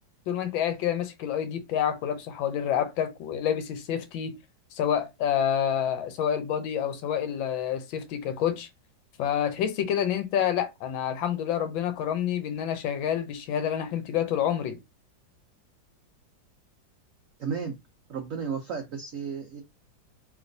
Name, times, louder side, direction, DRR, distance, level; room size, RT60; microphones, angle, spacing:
voice 1, 0.3-4.4 4.7-8.7 9.2-14.8, left 9 dB, 85° left, 1.4 m, -28 dB
voice 2, 17.4-17.7 18.1-19.6, right 6 dB, 75° right, 0.7 m, -33 dB
3.3 x 2.9 x 2.6 m
omnidirectional pair, 2.1 m